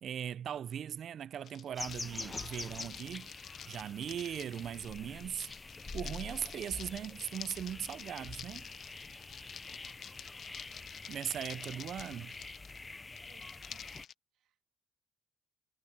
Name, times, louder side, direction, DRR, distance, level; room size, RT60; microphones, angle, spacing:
voice 1, 0.0-3.3 3.7-5.5 5.9-8.7 11.1-12.4, right 9 dB, 65° right, 0.4 m, -39 dB
sound 1, 1.4-14.1, left 9 dB, 65° left, 0.7 m, -50 dB
sound 2, 1.7-14.1, left 3 dB, 25° left, 0.5 m, -46 dB
voice 2, 11.4-11.9 13.3-13.9 14.3-14.7, right 11 dB, 85° right, 1.7 m, -67 dB
cardioid pair, 90°, 0 cm